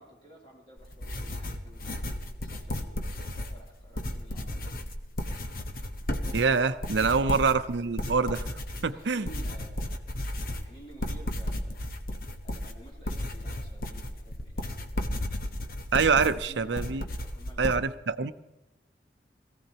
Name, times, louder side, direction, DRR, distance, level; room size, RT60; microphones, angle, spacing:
voice 1, 0.0-4.7 7.1-7.4 8.8-11.8 12.4-15.3 16.5-17.9, right 1 dB, 30° left, -3 dB, 3.0 m, -52 dB
sound 1, 0.8-17.8, left 1 dB, 55° left, 1.1 m, -34 dB
voice 2, 6.3-8.5 8.8-9.3 15.9-17.0 17.6-18.3, right 5 dB, 90° right, 11 dB, 0.6 m, -25 dB
21.5 x 15.5 x 2.9 m, 0.97 s
head